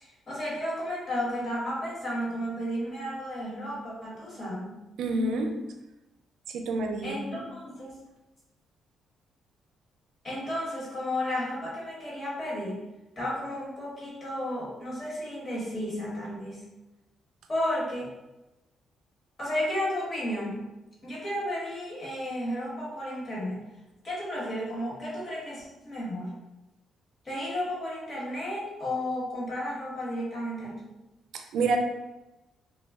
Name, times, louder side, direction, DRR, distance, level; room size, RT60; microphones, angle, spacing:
voice 1, 0.0-4.8 7.0-7.9 10.2-12.8 13.2-16.7 17.5-18.1 19.4-20.7 21.0-23.6 24.0-26.3 27.2-30.8, left 1 dB, 35° left, -6 dB, 1.2 m, -33 dB
voice 2, 5.0-5.6 6.5-7.2 31.3-31.8, right 3 dB, 80° right, 4 dB, 0.3 m, -28 dB
2.2 x 2.0 x 3.4 m, 1.0 s
cardioid pair, 90°, 0 cm